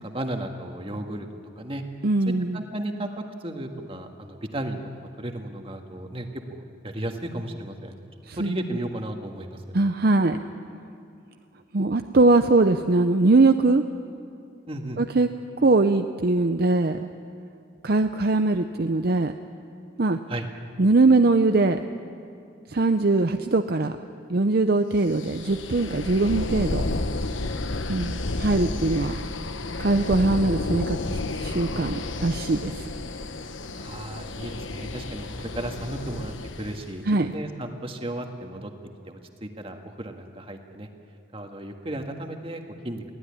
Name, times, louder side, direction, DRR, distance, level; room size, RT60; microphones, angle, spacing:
voice 1, 0.0-1.3 1.6-1.8 2.5-3.1 3.4-4.8 5.2-7.9 8.4-9.6 14.7-15.0 20.3-20.5 33.8-38.7 39.1-40.9 41.3-43.0, right 1 dB, 30° right, 4 dB, 1.7 m, -34 dB
voice 2, 2.0-2.6 8.3-8.5 9.7-10.4 11.7-13.8 15.0-15.3 15.6-17.1 17.8-19.3 20.0-20.2 20.8-21.8 22.7-23.9 24.3-26.8 27.9-29.2 29.8-32.9 37.1-37.3, right 3 dB, 55° right, 7 dB, 0.6 m, -21 dB
sound 1, 25.1-36.9, left 2 dB, 90° left, 1.2 m, -31 dB
22.5 x 16.5 x 9.9 m, 2.6 s
head